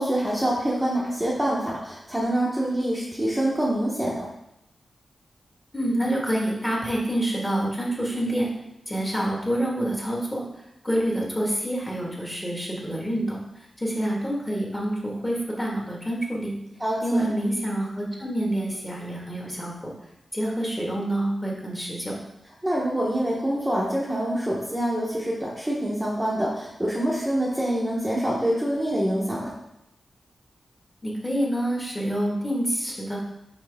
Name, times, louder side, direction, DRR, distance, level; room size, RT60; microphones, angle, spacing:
voice 1, 0.0-4.3 16.8-17.3 22.6-29.5, right 1 dB, 10° right, -5 dB, 0.9 m, -26 dB
voice 2, 5.7-8.5 8.9-10.4 10.8-16.5 17.0-19.9 20.3-22.2 31.0-33.2, right 1 dB, 15° left, -3 dB, 1.5 m, -27 dB
5.8 x 4.9 x 3.5 m, 0.83 s
wide cardioid pair, 125°, 0 cm